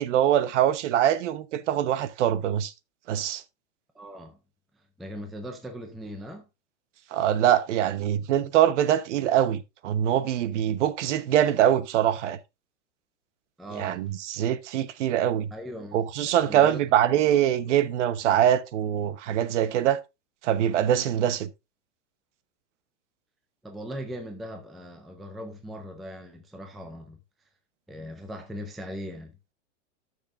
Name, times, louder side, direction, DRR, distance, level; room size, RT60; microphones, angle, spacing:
voice 1, 0.0-2.7 3.1-3.4 7.1-12.4 13.7-15.5 15.9-20.0 20.4-21.5, right 11 dB, 70° right, 1.0 m, -23 dB
voice 2, 3.9-4.4 5.0-6.4 13.6-14.0 15.5-16.8 17.0-17.4 17.7-17.8 23.6-27.2 27.9-29.3, equal, ahead, 0.3 m, -39 dB
12.0 x 6.5 x 2.5 m
supercardioid pair, 155°, 37 cm